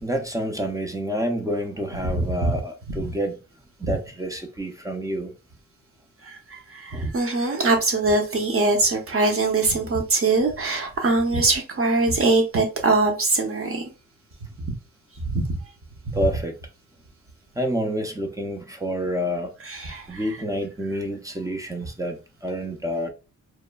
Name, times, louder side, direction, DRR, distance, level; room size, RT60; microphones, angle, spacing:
voice 1, 0.0-3.4 3.8-5.3 6.9-7.1 16.1-16.5 17.6-19.5 20.1-23.1, equal, 10° right, 0.4 m, -28 dB
voice 2, 2.0-2.5 3.8-3.9 6.2-13.9 14.6-14.8 15.3-15.4 19.7-20.2, right 3 dB, 40° right, 0.8 m, -22 dB
3.0 x 2.1 x 2.2 m
cardioid pair, 105°, 36 cm